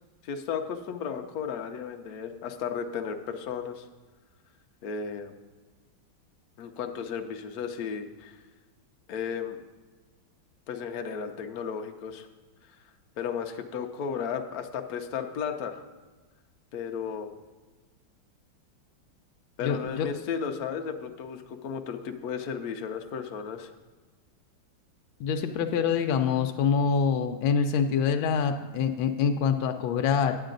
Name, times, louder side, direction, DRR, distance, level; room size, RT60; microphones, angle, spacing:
voice 1, 0.2-3.8 4.8-5.3 6.6-8.4 9.1-9.6 10.7-12.3 13.2-15.8 16.7-17.3 19.6-23.7, left 6 dB, 65° left, 5 dB, 0.9 m, -34 dB
voice 2, 19.6-20.1 25.2-30.4, left 6 dB, 85° left, 5 dB, 1.4 m, -25 dB
9.0 x 8.7 x 3.8 m, 1.3 s
omnidirectional pair, 2.1 m